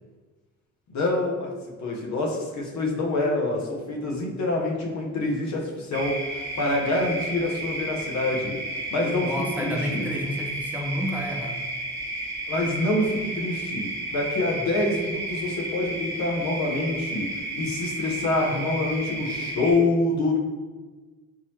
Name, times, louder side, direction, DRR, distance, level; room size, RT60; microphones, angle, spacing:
voice 1, 0.9-1.5 1.8-8.6 8.9-10.1 12.5-20.4, left 2 dB, 65° left, 0 dB, 0.8 m, -26 dB
sound 1, 5.9-19.7, right 2 dB, 65° right, 1.1 m, -33 dB
voice 2, 9.2-11.6, equal, 5° right, 1 dB, 0.4 m, -30 dB
3.7 x 3.0 x 2.7 m, 1.3 s
cardioid pair, 90°, 30 cm